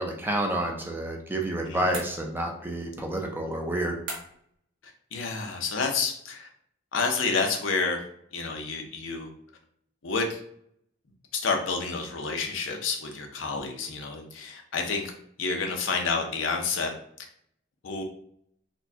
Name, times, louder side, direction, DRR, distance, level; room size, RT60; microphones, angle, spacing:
voice 1, 0.0-3.9, right 1 dB, 10° right, 1 dB, 0.5 m, -29 dB
voice 2, 1.6-2.0 5.1-6.5 6.9-8.0 8.3-9.3 10.0-10.4 11.3-15.1 15.4-16.9 17.8-18.0, left 4 dB, 80° left, 3 dB, 0.7 m, -29 dB
sound 1, 1.9-2.7 4.1-4.6, right 2 dB, 75° right, 1.1 m, -39 dB
4.2 x 2.3 x 2.7 m, 0.67 s
head